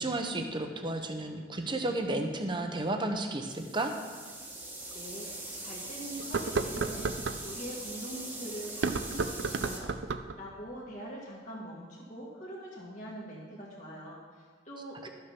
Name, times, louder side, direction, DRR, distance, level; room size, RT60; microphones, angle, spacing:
voice 1, 0.0-3.9 15.0-15.1, right 2 dB, 25° right, 4 dB, 0.9 m, -32 dB
sound 1, 3.5-9.8, right 2 dB, 10° right, 1.4 m, -42 dB
sound 2, 4.2-4.3 4.9-5.0 6.2-7.4 8.7-10.4, right 4 dB, 70° right, 0.5 m, -32 dB
voice 2, 4.9-5.3 5.6-9.9 10.4-15.1, right 1 dB, 40° left, -5 dB, 1.8 m, -43 dB
12.5 x 6.5 x 6.1 m, 1.5 s
head